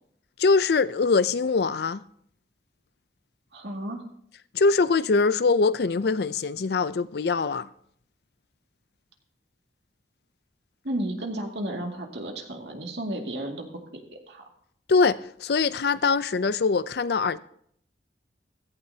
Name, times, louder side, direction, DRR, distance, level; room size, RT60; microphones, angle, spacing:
voice 1, 0.4-2.0 4.5-7.7 14.9-17.4, left 4 dB, 65° left, 0.5 m, -23 dB
voice 2, 3.5-4.1 10.8-13.7 13.9-14.4, right 1 dB, 75° right, 2.2 m, -33 dB
16.0 x 15.0 x 2.8 m
head